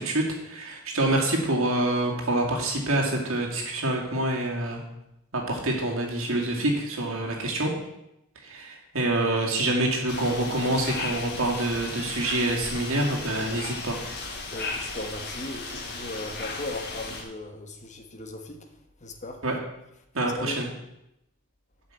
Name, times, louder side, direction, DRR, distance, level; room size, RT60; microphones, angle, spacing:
voice 1, 0.0-4.8 5.3-7.7 8.5-13.9 19.4-19.5 20.1-20.7, right 1 dB, 65° right, -1 dB, 2.4 m, -26 dB
sound 1, 10.1-17.2, left 3 dB, 50° left, 2.0 m, -35 dB
voice 2, 14.5-18.6 19.0-19.4 20.4-20.6, left 2 dB, 35° left, 5 dB, 1.3 m, -37 dB
8.0 x 6.0 x 8.0 m, 0.86 s
head